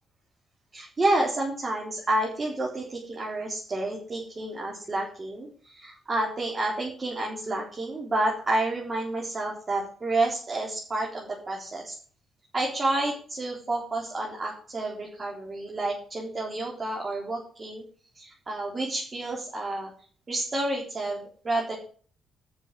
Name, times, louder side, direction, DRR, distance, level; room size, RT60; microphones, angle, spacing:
voice 1, 0.7-12.0 12.5-17.8 18.1-19.9 20.3-21.7, right 2 dB, 30° right, -3 dB, 4.0 m, -29 dB
8.3 x 6.8 x 8.3 m, 0.43 s
cardioid pair, 90°, 0 cm